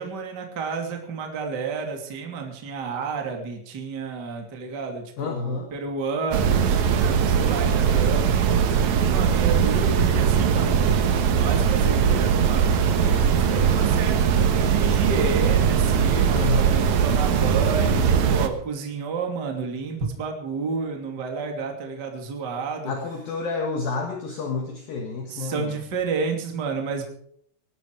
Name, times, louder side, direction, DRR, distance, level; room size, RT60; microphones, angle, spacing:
voice 1, 0.0-8.3 9.0-12.8 13.1-22.9 25.3-27.0, right 4 dB, 30° right, 3 dB, 2.4 m, -31 dB
voice 2, 5.2-5.7 16.3-17.0 22.8-25.8, left 3 dB, 60° left, 2 dB, 3.0 m, -29 dB
sound 1, 6.3-18.5, right 7 dB, 80° right, 1.6 m, -20 dB
19.0 x 13.0 x 4.7 m, 0.63 s
omnidirectional pair, 5.3 m